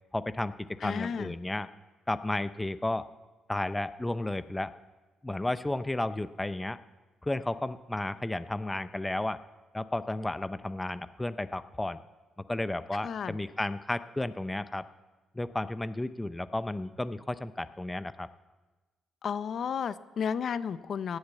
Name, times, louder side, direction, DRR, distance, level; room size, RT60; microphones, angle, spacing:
voice 1, 0.1-0.5 0.8-1.7 2.1-3.1 3.5-4.7 5.2-6.8 7.2-9.4 9.7-12.0 12.5-14.8 15.3-18.3, left 2 dB, 10° left, 13 dB, 0.5 m, -33 dB
voice 2, 0.8-1.3 13.0-13.4 19.2-21.2, left 7 dB, 60° left, 14 dB, 0.6 m, -32 dB
18.5 x 6.5 x 8.2 m, 1.2 s
cardioid pair, 90°, 0 cm